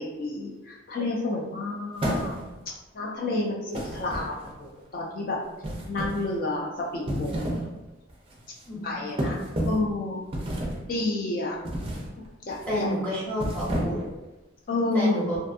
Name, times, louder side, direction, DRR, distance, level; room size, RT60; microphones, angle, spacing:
voice 1, 0.0-2.3 2.9-4.3 4.6-5.4 5.9-7.4 8.8-9.4 9.6-10.3 10.9-11.5 12.5-12.9 14.7-15.1, left 2 dB, 45° left, -2 dB, 0.3 m, -29 dB
sound 1, 2.0-2.7 3.7-4.6 5.6-6.3 6.9-7.7 8.1-8.3 9.2-9.9 10.3-10.9 11.6-12.1 12.5-12.8 13.3-14.2, equal, 30° right, 0.4 m, -30 dB
voice 2, 8.7-9.0 12.7-14.0 14.9-15.4, equal, 5° left, -9 dB, 0.9 m, -30 dB
2.5 x 2.4 x 2.4 m, 1.1 s
head